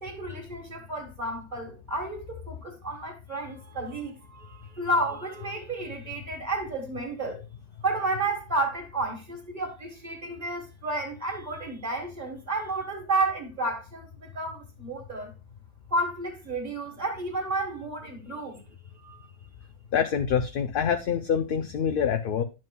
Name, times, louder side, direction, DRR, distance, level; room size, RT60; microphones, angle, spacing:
voice 1, 0.0-7.4 7.8-15.3 15.9-18.6 19.0-19.3, right 2 dB, 40° right, 1.6 m, -31 dB
voice 2, 19.9-22.4, left 7 dB, 55° left, 0.7 m, -26 dB
11.0 x 7.6 x 2.3 m
omnidirectional pair, 1.3 m